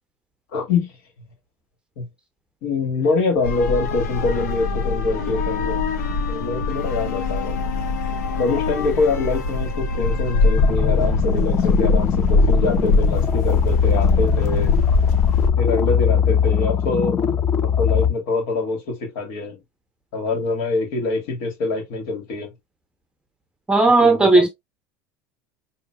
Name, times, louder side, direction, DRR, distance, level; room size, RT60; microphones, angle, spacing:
voice 1, 0.5-0.9 2.0-2.1 2.6-5.8 6.3-7.6 8.4-14.7 15.6-17.2 17.6-19.6 20.1-22.5 24.0-24.5, left 3 dB, 70° left, 1.7 m, -24 dB
sound 1, 3.4-15.5, left 3 dB, 90° left, 1.1 m, -22 dB
sound 2, 10.6-18.1, left 8 dB, 25° left, 0.4 m, -21 dB
voice 2, 23.7-24.5, right 3 dB, 10° right, 0.6 m, -14 dB
5.9 x 2.6 x 2.3 m
supercardioid pair, 110°, 9 cm